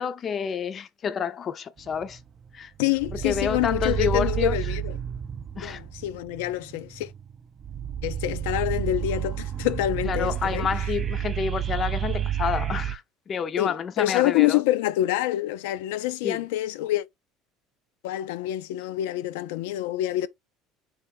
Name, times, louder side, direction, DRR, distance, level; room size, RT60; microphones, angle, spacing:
voice 1, 0.0-2.2 2.5-2.7 3.1-4.6 5.6-5.8 10.0-14.6 16.2-16.4, left 7 dB, 35° left, 0.5 m, -29 dB
sound 1, 1.8-2.6 3.0-12.9, right 10 dB, 35° right, 0.5 m, -31 dB
voice 2, 2.8-5.0 5.5-7.1 8.0-10.7 13.6-17.0 18.0-20.3, left 15 dB, 90° left, 0.5 m, -26 dB
4.2 x 3.3 x 3.4 m
supercardioid pair, 120°, 0 cm